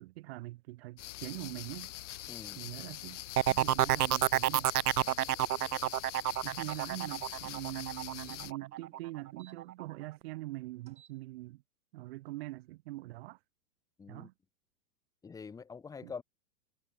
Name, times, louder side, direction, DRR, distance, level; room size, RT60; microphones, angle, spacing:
voice 1, 0.0-1.9 2.6-3.2 3.5-4.7 6.4-11.6 11.9-13.4 14.1-14.3 16.0-16.1, right 19 dB, 40° right, 3.4 m, -43 dB
sound 1, 1.0-8.5, left 14 dB, 50° left, 1.4 m, -44 dB
sound 2, 2.1-2.4 4.5-4.7 6.6-6.9 8.2-9.6 10.8-11.2, right 9 dB, 15° right, 4.6 m, -61 dB
voice 2, 2.3-2.6 14.0-14.3 15.2-16.2, left 5 dB, 5° left, 2.6 m, -45 dB
sound 3, 3.4-9.0 9.4-9.8, right 12 dB, 75° right, 1.1 m, -29 dB
hypercardioid pair, 165°, 46 cm